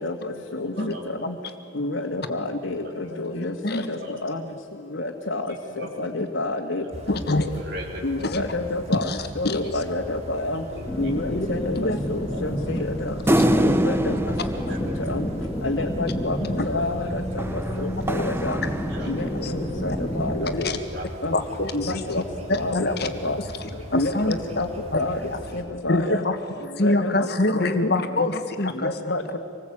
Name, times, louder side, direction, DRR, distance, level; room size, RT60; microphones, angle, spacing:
voice 1, 0.0-0.7 1.3-1.4 1.8-4.4 4.9-5.5 5.8-6.8 7.1-7.5 8.0-9.1 9.4-10.6 11.0-13.1 13.8-14.3 15.1-15.3 15.6-16.4 16.7-17.4 17.8-18.6 19.1-20.5 21.2-21.3 21.7-22.2 22.5-23.4 23.9-24.7 25.0-25.2 25.5-26.2 26.8-27.9 28.8-29.4, left 2 dB, 75° left, 0 dB, 1.9 m, -29 dB
voice 2, 0.7-1.2 1.6-1.7 2.2-2.3 2.8-3.2 3.8-4.6 5.5-5.9 6.8-7.1 7.6-8.3 9.6-9.7 10.7-11.1 12.3-12.7 13.3-13.9 14.4-15.0 16.4-16.8 17.6-17.8 18.7-19.5 19.8-20.2 20.9-21.3 22.0-22.3 23.8-23.9 24.3-24.4 26.2-26.5 29.3-29.4, equal, 55° right, 0 dB, 4.9 m, -40 dB
sound 1, 6.9-25.6, equal, 35° right, 2.9 m, -39 dB
voice 3, 7.1-7.6 8.2-8.5 8.9-9.6 11.3-11.5 11.7-12.0 13.4-13.5 14.1-14.2 16.6-16.7 18.2-18.5 19.4-19.5 20.5-20.8 21.3-22.0 22.5-23.1 23.6-24.3 24.9-25.4 25.9-28.9, left 2 dB, 55° left, 7 dB, 1.8 m, -25 dB
sound 2, 10.9-20.6, equal, 15° left, 2.1 m, -30 dB
sound 3, 13.3-15.9 17.4-19.5, equal, 10° right, 1.0 m, -25 dB
26.0 x 20.0 x 8.8 m, 2.6 s
head